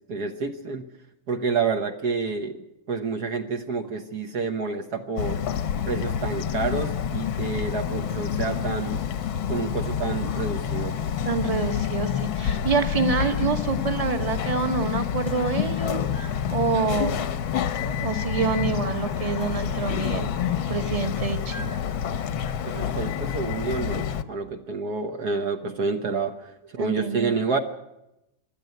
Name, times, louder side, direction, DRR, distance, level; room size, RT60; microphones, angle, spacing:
voice 1, 0.1-0.8 1.3-2.6 2.9-5.4 5.9-9.0 9.5-11.1 22.7-27.6, right 4 dB, 55° right, 5 dB, 1.6 m, -29 dB
Bird vocalization bird call bird song, 5.2-24.2, left 8 dB, 85° left, 1.7 m, -28 dB
voice 2, 11.2-17.3 17.9-21.8 26.8-27.4, right 5 dB, 20° right, 7 dB, 1.3 m, -27 dB
25.0 x 12.0 x 9.4 m, 0.90 s
omnidirectional pair, 2.1 m